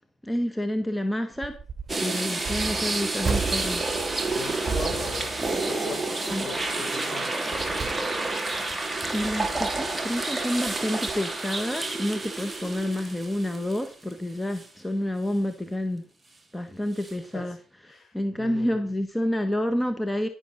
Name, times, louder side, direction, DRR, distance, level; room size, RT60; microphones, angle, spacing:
voice 1, 0.2-1.6 2.0-3.8 6.3-6.5 9.1-16.0 16.5-17.6 17.9-20.3, left 1 dB, 10° left, 1.2 m, -29 dB
sound 1, 1.3-2.0 2.4-6.1 6.4-6.8 7.3-8.5 9.0-10.0 10.7-10.8 11.1-11.2, right 5 dB, 35° right, 3.4 m, -35 dB
sound 2, 1.9-14.1 14.5-14.7 17.0-17.1, right 2 dB, 15° right, 2.5 m, -29 dB
voice 2, 4.3-7.5 17.3-17.4 17.9-18.9, left 5 dB, 50° left, 4.8 m, -40 dB
11.0 x 10.5 x 4.0 m
cardioid pair, 90°, 0 cm